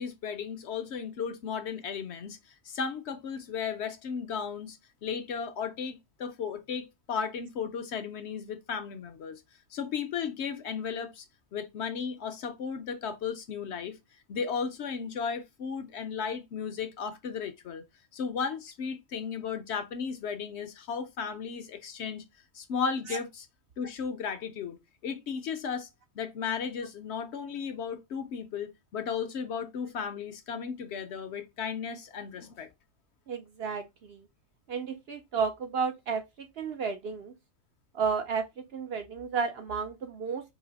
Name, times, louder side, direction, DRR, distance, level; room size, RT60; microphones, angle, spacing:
voice 1, 0.0-2.4 2.6-9.4 9.7-11.3 11.5-14.0 14.3-17.8 18.1-22.2 22.5-23.5 23.8-25.9 26.2-32.7, left 6 dB, 65° left, 0.8 m, -35 dB
voice 2, 33.3-34.2 34.7-37.3 37.9-38.4 38.7-40.4, right 5 dB, 60° right, 0.7 m, -32 dB
4.0 x 2.8 x 3.9 m
omnidirectional pair, 1.4 m